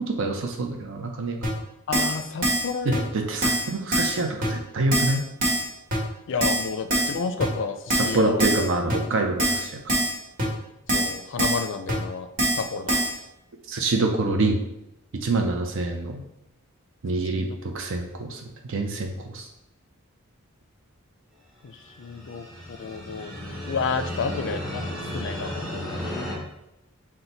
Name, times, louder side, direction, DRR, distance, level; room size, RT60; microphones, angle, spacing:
voice 1, 0.2-1.5 2.9-5.3 8.0-9.8 13.7-14.6 15.1-16.2 17.0-19.5, right 2 dB, 65° right, 2 dB, 0.5 m, -26 dB
Keyboard (musical), 1.4-1.5 1.9-2.2 2.4-2.7 2.9-3.0 3.4-3.6 3.9-4.1 4.4-4.5 4.9-5.1 5.4-5.6 5.9-6.0 6.4-6.6 6.9-7.1 7.4-7.5 7.9-8.1 8.4-8.6 8.9-9.0 9.4-9.6 9.9-10.1 10.4-10.5 10.9-11.1 11.4-11.6 11.9-12.0 12.4-12.6 12.9-13.1, right 1 dB, 40° right, 1.5 m, -23 dB
voice 2, 1.9-3.0 6.3-8.5 9.5-9.6 10.9-12.3 12.5-13.0 17.2-17.5 21.6-26.3, left 5 dB, 60° left, 9 dB, 0.4 m, -31 dB
sound 1, 21.8-26.3, left 1 dB, ahead, 1.5 m, -34 dB
5.9 x 2.1 x 3.9 m, 0.88 s
head